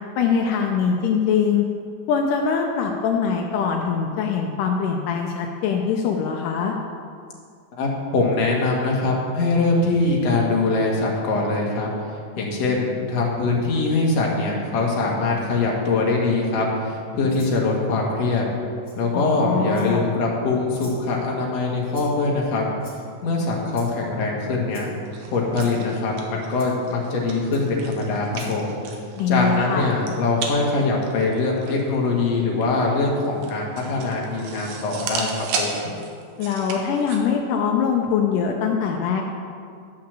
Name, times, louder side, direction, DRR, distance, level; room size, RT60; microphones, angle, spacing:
voice 1, 0.2-1.7 2.1-6.7 19.1-20.0 29.2-29.9 36.4-39.2, left 6 dB, 85° left, 2 dB, 2.3 m, -22 dB
voice 2, 7.8-11.9 12.4-18.4 19.0-22.7 23.2-24.9 25.3-28.8 29.3-35.9, left 3 dB, 55° left, -2 dB, 2.6 m, -23 dB
Rattle (instrument), 17.3-17.6 18.8-19.0 19.7-20.1 20.7-21.0 21.9-22.3 22.8-23.2 23.7-24.0 24.7-24.9 25.5-25.8 26.6-26.7 27.5-27.6 28.3-28.6, left 2 dB, 20° left, 2.5 m, -46 dB
sound 1, 25.1-37.2, right 4 dB, 85° right, 2.8 m, -35 dB
11.5 x 5.8 x 7.5 m, 2.3 s
omnidirectional pair, 3.7 m